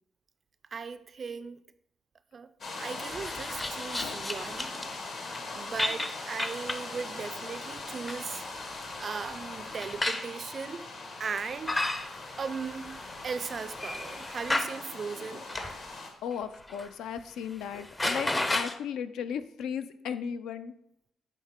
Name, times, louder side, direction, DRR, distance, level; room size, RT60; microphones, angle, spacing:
voice 1, 0.7-1.6 2.3-2.5 2.8-4.8 5.5-8.4 9.0-10.9 11.2-11.9 12.4-15.4, right 5 dB, 45° right, 0.3 m, -38 dB
sound 1, 2.6-16.1, left 3 dB, 60° left, 1.3 m, -41 dB
sound 2, 3.0-5.0 5.3-5.4 5.8-6.9 7.8-10.3 11.3-14.8 15.5-15.8 16.3-16.9 17.2-17.3 17.6-18.7, left 2 dB, 20° left, 0.5 m, -34 dB
voice 2, 16.2-20.7, left 7 dB, 85° left, 0.4 m, -36 dB
9.1 x 3.2 x 3.6 m
cardioid pair, 90°, 0 cm